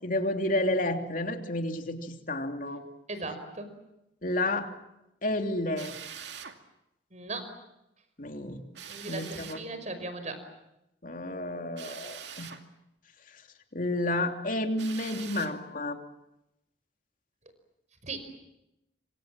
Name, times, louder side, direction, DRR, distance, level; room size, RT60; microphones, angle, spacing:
voice 1, 0.0-2.8 4.2-4.7 5.2-5.9 8.2-8.6 9.1-9.6 11.0-12.5 13.7-16.0, left 1 dB, 50° left, 5 dB, 3.0 m, -30 dB
voice 2, 3.1-3.7 7.1-7.6 8.9-10.4 18.0-18.3, right 3 dB, 40° right, 10 dB, 5.4 m, -38 dB
Drill, 5.8-6.6 8.7-9.7 11.8-12.6 14.8-15.6, right 8 dB, 75° right, 2.5 m, -43 dB
27.0 x 26.0 x 7.6 m, 0.88 s
head